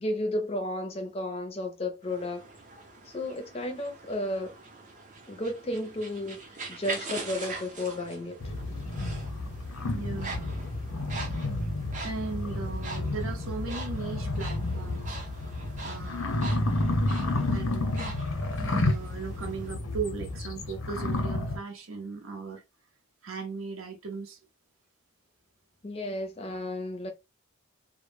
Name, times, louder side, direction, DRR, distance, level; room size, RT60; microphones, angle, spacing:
voice 1, 0.0-2.5 3.1-4.6 5.3-8.5 25.8-27.1, left 1 dB, 30° left, 0.5 m, -33 dB
sound 1, 2.0-19.7, right 3 dB, 35° right, 0.5 m, -43 dB
sound 2, 8.4-21.6, left 2 dB, 80° left, 0.7 m, -31 dB
voice 2, 9.9-10.5 12.0-15.2 15.8-16.6 17.5-17.9 18.8-22.6 23.2-24.4, right 5 dB, 80° right, 0.6 m, -37 dB
2.1 x 2.0 x 3.1 m
head